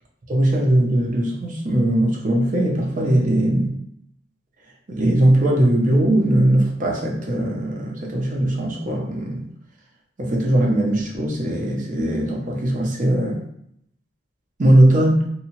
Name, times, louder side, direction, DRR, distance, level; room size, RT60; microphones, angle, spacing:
voice 1, 0.3-3.7 4.9-9.4 10.2-13.4 14.6-15.3, right 1 dB, 45° right, -1 dB, 0.6 m, -19 dB
2.7 x 2.3 x 2.9 m, 0.72 s
head